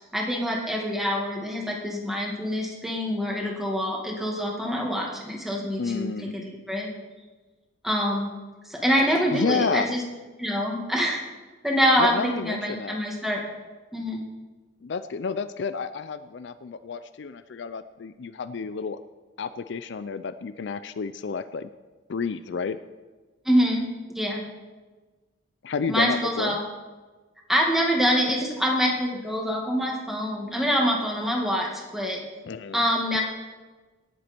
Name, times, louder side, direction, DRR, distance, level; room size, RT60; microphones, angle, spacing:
voice 1, 0.1-6.9 7.8-8.3 8.6-10.0 10.4-11.2 11.6-13.4 13.9-14.2 23.4-24.4 25.9-26.6 27.5-32.2 32.7-33.2, equal, ahead, -2 dB, 2.1 m, -25 dB
voice 2, 5.8-6.4 9.3-9.9 12.0-13.0 14.8-19.0 19.4-21.7 22.1-22.8 25.6-26.6 32.5-32.8, left 5 dB, 60° left, 12 dB, 0.4 m, -30 dB
18.0 x 8.1 x 4.5 m, 1.3 s
head